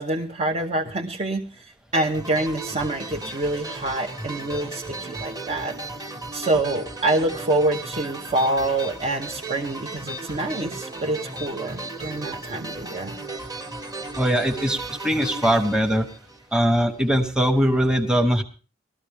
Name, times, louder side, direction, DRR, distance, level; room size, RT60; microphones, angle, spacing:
voice 1, 0.0-5.7 6.3-13.2, right 2 dB, 35° right, 1 dB, 1.0 m, -26 dB
sound 1, 1.9-16.8, right 2 dB, 20° right, 1.4 m, -35 dB
voice 2, 14.1-16.1 16.5-18.4, equal, 5° right, 5 dB, 1.2 m, -21 dB
19.5 x 13.5 x 3.5 m, 0.34 s
head